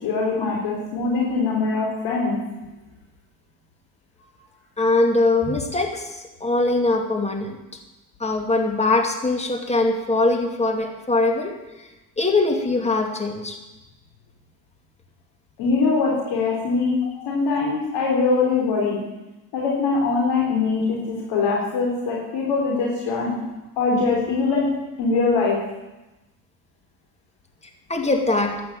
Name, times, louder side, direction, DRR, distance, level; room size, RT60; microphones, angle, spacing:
voice 1, 0.0-2.3 15.6-19.0 19.5-23.3 23.8-24.7 25.0-25.5, left 4 dB, 75° left, -2 dB, 3.6 m, -22 dB
voice 2, 4.8-7.6 8.2-11.9 12.2-13.6 17.0-17.3 27.9-28.5, left 2 dB, 15° left, 4 dB, 2.4 m, -22 dB
12.0 x 9.2 x 9.0 m, 1.0 s
cardioid pair, 90°, 42 cm